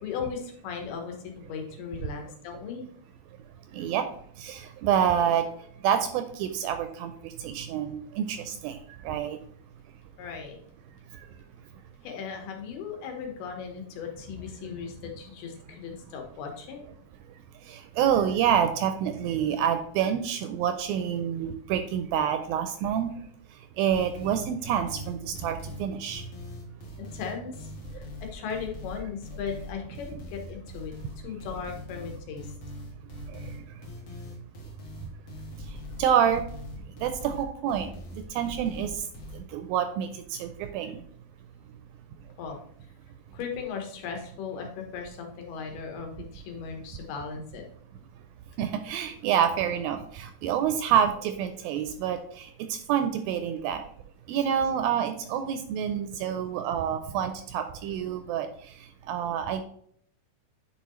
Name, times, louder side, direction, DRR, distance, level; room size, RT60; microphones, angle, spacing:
voice 1, 0.0-2.9 10.2-10.6 12.0-16.8 27.0-30.9 31.2-32.5 42.4-42.6 43.3-47.6, left 6 dB, 80° left, 3 dB, 3.1 m, -37 dB
voice 2, 3.7-4.1 4.4-5.5 5.8-8.8 9.1-9.4 17.7-23.1 23.8-26.2 33.3-33.4 36.0-36.4 37.0-37.9 38.3-38.9 39.3-41.0 48.6-53.8 54.3-58.5 59.1-59.6, right 9 dB, 80° right, 8 dB, 2.2 m, -27 dB
sound 1, 23.9-39.4, left 1 dB, 55° left, 1.9 m, -41 dB
9.2 x 4.6 x 3.1 m, 0.65 s
omnidirectional pair, 4.5 m